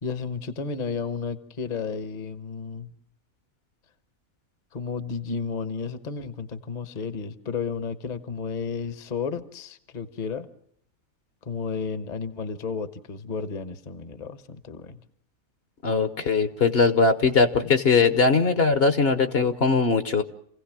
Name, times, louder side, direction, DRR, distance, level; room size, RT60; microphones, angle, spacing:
voice 1, 0.0-2.9 4.7-10.5 11.5-15.0, left 5 dB, 35° left, 11 dB, 1.1 m, -32 dB
voice 2, 15.8-20.2, left 4 dB, 50° left, 9 dB, 1.2 m, -20 dB
27.5 x 16.5 x 7.4 m, 0.69 s
omnidirectional pair, 1.4 m